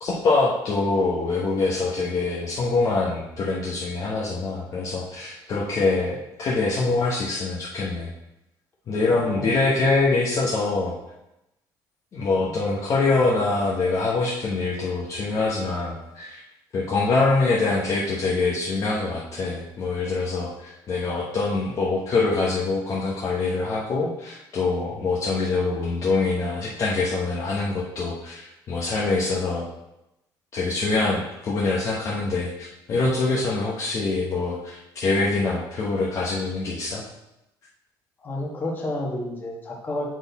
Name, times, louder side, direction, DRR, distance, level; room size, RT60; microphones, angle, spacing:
voice 1, 0.0-8.1 8.9-11.0 12.1-16.4 16.7-29.6 30.5-37.0, left 3 dB, 40° left, -5 dB, 0.9 m, -24 dB
voice 2, 9.1-9.8 12.5-12.6 38.2-40.2, left 1 dB, 25° left, -2 dB, 1.4 m, -31 dB
7.6 x 4.2 x 4.0 m, 0.89 s
cardioid pair, 165°, 8 cm